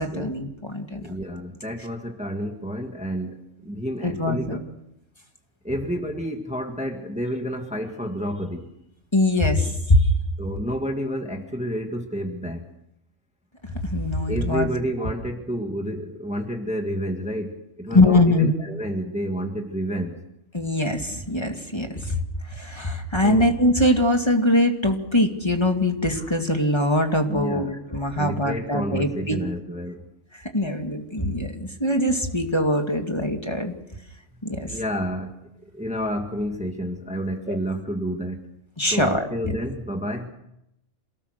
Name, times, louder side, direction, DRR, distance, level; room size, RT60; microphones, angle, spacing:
voice 1, 0.0-1.0 4.0-4.6 9.1-10.1 13.8-14.7 17.9-18.5 20.5-22.2 22.5-29.4 30.5-33.7 34.4-34.8 37.5-37.6 38.8-39.5, left 1 dB, 20° left, 3 dB, 2.3 m, -22 dB
voice 2, 1.0-3.4 3.6-4.6 5.7-8.7 10.4-12.6 14.3-20.2 23.2-23.5 27.3-27.7 28.2-30.0 34.7-35.3 35.8-38.4 38.9-40.3, equal, 5° right, 4 dB, 1.7 m, -29 dB
27.5 x 18.0 x 6.6 m, 0.83 s
omnidirectional pair, 1.3 m